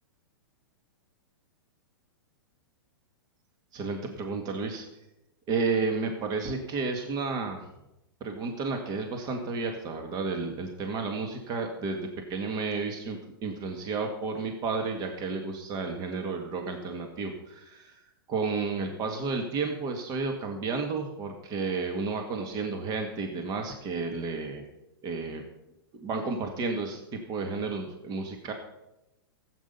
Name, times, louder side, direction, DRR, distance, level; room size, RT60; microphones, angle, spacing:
voice 1, 3.7-4.9 5.5-7.7 8.2-12.0 12.3-18.0 18.3-24.6 25.0-25.4 26.0-28.5, right 4 dB, 30° right, 4 dB, 1.9 m, -32 dB
14.0 x 8.6 x 5.6 m, 0.90 s
hypercardioid pair, 120°, 13 cm